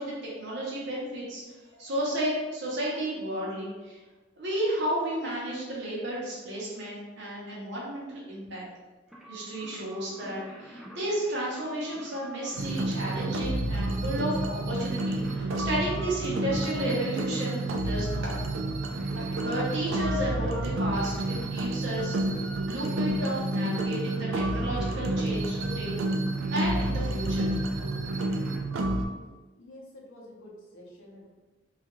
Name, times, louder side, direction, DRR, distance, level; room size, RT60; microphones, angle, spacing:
voice 1, 0.0-1.4 1.7-4.0 4.4-8.6 9.3-18.4 19.4-26.0 26.5-27.6, right 1 dB, 65° right, -6 dB, 0.7 m, -33 dB
sound 1, 9.1-28.6, right 1 dB, ahead, 0.3 m, -47 dB
sound 2, 12.6-29.1, right 1 dB, 90° right, 0.3 m, -29 dB
voice 2, 29.6-31.3, left 1 dB, 85° left, -3 dB, 0.7 m, -49 dB
2.3 x 2.3 x 2.9 m, 1.2 s
head